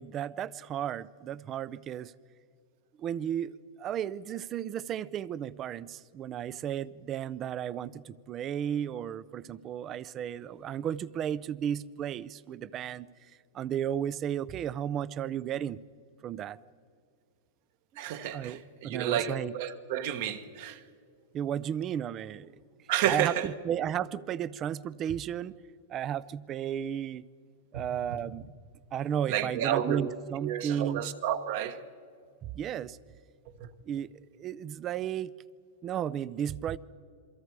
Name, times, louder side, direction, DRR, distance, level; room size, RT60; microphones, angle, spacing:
voice 1, 0.0-2.1 3.0-13.1 13.5-15.8 16.2-16.6 18.3-19.5 21.3-22.6 23.1-25.5 25.9-27.2 27.7-28.5 28.9-31.1 32.4-33.0 33.9-34.1 34.4-35.3 35.8-36.8, right 9 dB, 25° right, 0.4 m, -34 dB
voice 2, 18.0-20.8 22.9-23.5 27.7-27.8 29.3-30.1 30.4-31.8 33.6-33.7, right 10 dB, 50° right, 1.3 m, -31 dB
28.0 x 23.5 x 4.7 m
supercardioid pair, 160°, 0 cm